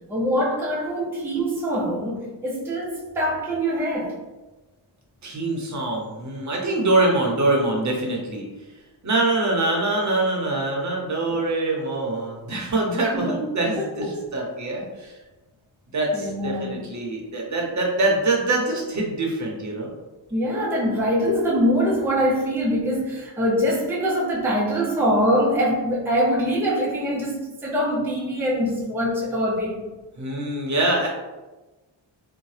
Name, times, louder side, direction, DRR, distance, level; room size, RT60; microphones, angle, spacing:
voice 1, 0.1-4.1 13.1-13.4 13.7-14.2 16.1-16.8 20.3-29.8, equal, 5° right, -4 dB, 0.5 m, -23 dB
voice 2, 5.2-8.4 9.0-15.2 15.9-19.9 30.2-31.1, right 2 dB, 35° right, -2 dB, 0.7 m, -24 dB
2.7 x 2.1 x 3.2 m, 1.1 s
wide cardioid pair, 120°, 48 cm